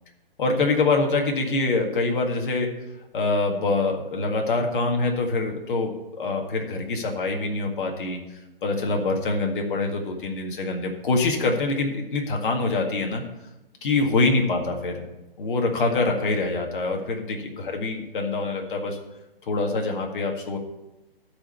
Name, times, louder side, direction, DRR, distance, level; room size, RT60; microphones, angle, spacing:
voice 1, 0.4-2.7 3.1-8.2 8.6-13.2 13.8-15.0 15.4-17.4 17.6-19.0 19.4-20.6, left 3 dB, 60° left, 2 dB, 1.9 m, -25 dB
12.5 x 5.1 x 6.8 m, 0.99 s
figure-of-eight pair, 135°, 30 cm